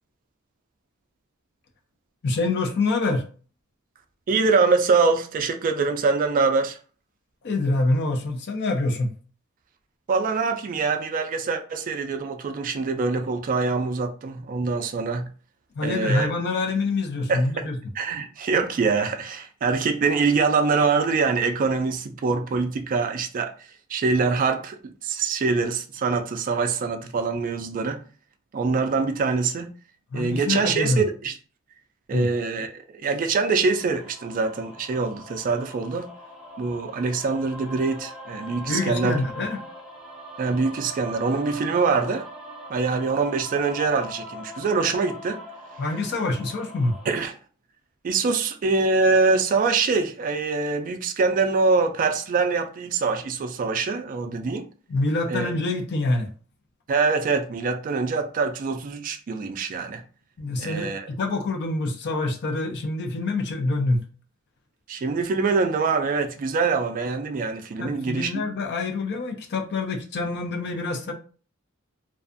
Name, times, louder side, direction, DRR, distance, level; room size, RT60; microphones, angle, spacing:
voice 1, 2.2-3.2 7.4-9.1 15.8-17.8 30.1-31.0 32.1-32.3 38.7-39.6 45.8-46.9 54.9-56.3 60.4-64.0 67.8-71.1, left 2 dB, 50° left, 0.5 m, -26 dB
voice 2, 4.3-6.8 10.1-15.3 15.8-16.3 17.3-17.7 17.9-23.5 23.9-28.0 28.5-29.7 30.1-31.3 32.1-36.1 36.6-39.2 40.4-42.3 42.7-45.4 47.1-47.3 48.0-54.7 55.3-55.5 56.9-60.0 60.6-61.1 64.9-68.5, right 4 dB, 40° right, 0.3 m, -24 dB
sound 1, 33.7-47.3, equal, 5° right, 0.7 m, -41 dB
2.5 x 2.3 x 2.4 m
head